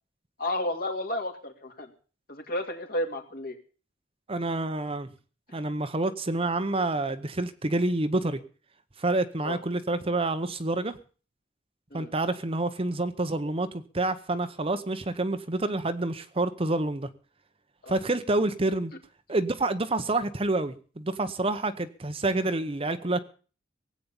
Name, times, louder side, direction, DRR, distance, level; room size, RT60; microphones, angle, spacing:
voice 1, 0.4-1.9 2.3-3.6 9.4-9.6 11.9-12.1 17.8-18.0, left 1 dB, 55° left, 4 dB, 2.6 m, -32 dB
voice 2, 4.3-5.1 5.5-8.4 9.0-11.0 11.9-17.1 17.9-18.9 19.3-23.2, right 2 dB, 30° right, 10 dB, 0.9 m, -28 dB
18.0 x 8.6 x 7.0 m, 0.40 s
head